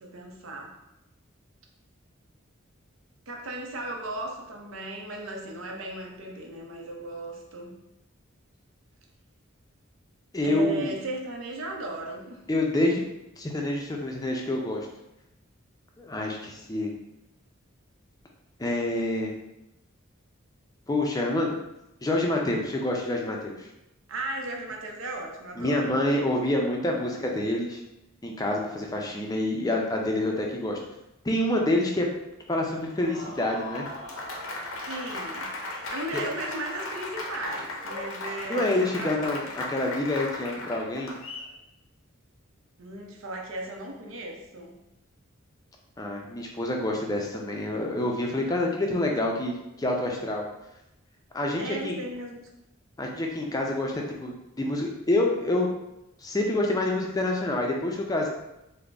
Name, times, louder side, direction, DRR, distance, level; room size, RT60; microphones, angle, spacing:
voice 1, 0.0-0.7 3.3-7.7 10.4-12.4 24.1-25.8 34.9-39.1 42.8-44.7 51.6-52.5, right 2 dB, 75° right, 1 dB, 0.6 m, -36 dB
voice 2, 10.3-10.9 12.5-13.1 13.4-14.9 16.0-16.9 18.6-19.3 20.9-21.6 22.0-23.7 25.6-27.8 28.2-30.8 31.2-32.1 32.5-33.9 36.1-36.2 38.5-41.1 46.0-50.4 51.3-52.0 53.0-55.7 56.2-58.3, left 1 dB, 20° left, 0 dB, 0.4 m, -27 dB
Applause, 32.8-41.5, left 2 dB, 85° left, 0.6 m, -37 dB
3.7 x 2.0 x 3.3 m, 0.91 s
head